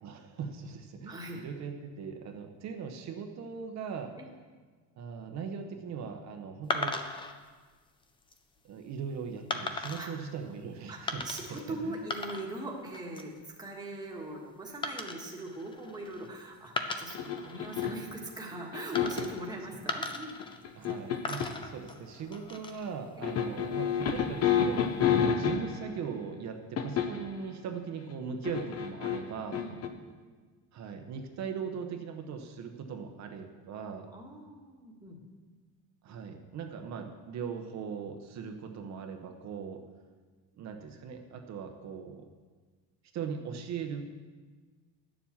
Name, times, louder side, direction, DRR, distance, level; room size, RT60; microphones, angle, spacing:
voice 1, 0.0-4.1 5.0-7.0 8.6-12.0 20.7-25.0 25.3-29.6 30.7-34.1 36.0-39.8 40.6-42.3 43.1-44.1, right 6 dB, 40° right, 5 dB, 0.9 m, -39 dB
voice 2, 1.1-1.4 4.2-4.3 10.0-10.1 10.9-13.3 13.6-20.4 23.2-23.3 29.5-29.8 34.1-35.2, right 2 dB, 10° right, -1 dB, 1.4 m, -41 dB
sound 1, 6.7-7.3 8.0-8.4 9.5-10.1 11.1-11.6 11.9-12.7 12.9-13.4 14.8-16.3 16.7-17.9 18.9-19.5 19.9-20.9 21.2-22.9 23.9-24.5, left 3 dB, 15° left, 0.4 m, -37 dB
sound 2, 17.1-18.1 18.7-19.4 20.4-21.6 23.2-25.9 26.8-27.3 28.4-29.9, left 7 dB, 35° left, 0.8 m, -29 dB
9.8 x 7.2 x 7.2 m, 1.4 s
cardioid pair, 175°, 41 cm